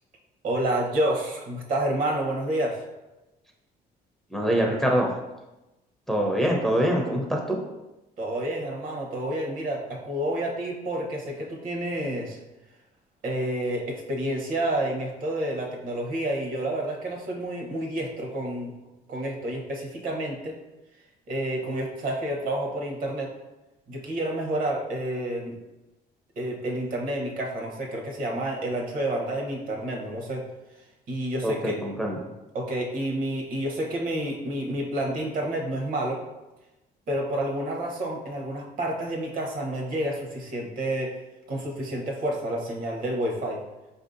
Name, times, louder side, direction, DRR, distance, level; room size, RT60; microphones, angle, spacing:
voice 1, 0.4-2.8 8.2-12.4 13.2-18.7 19.1-20.6 21.3-23.3 23.9-25.5 26.4-30.4 31.1-31.8 32.5-36.2 37.1-41.1 41.5-43.6, right 1 dB, 55° right, 0 dB, 0.8 m, -29 dB
voice 2, 4.3-5.1 6.1-7.6 31.4-32.2, equal, ahead, -1 dB, 0.5 m, -24 dB
4.7 x 2.6 x 2.5 m, 1.0 s
cardioid pair, 110°, 17 cm